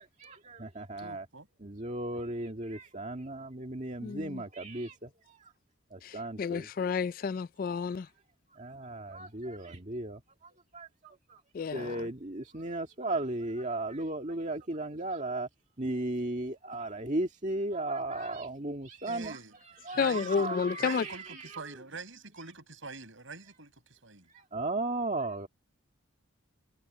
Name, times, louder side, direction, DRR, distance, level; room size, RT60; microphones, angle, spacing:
voice 1, 0.0-1.3 1.6-5.4 5.9-6.7 8.5-10.2 10.7-11.4 11.7-15.5 15.8-19.4 19.8-21.7 24.3-25.5, right 2 dB, 35° right, 2.1 m, -36 dB
voice 2, 1.0-1.5 19.0-19.6 19.9-20.5 20.8-24.3, right 3 dB, 65° right, 6.9 m, -45 dB
voice 3, 4.0-4.4 6.0-8.1 11.5-12.1 20.0-21.1, left 6 dB, 45° left, 0.3 m, -31 dB
head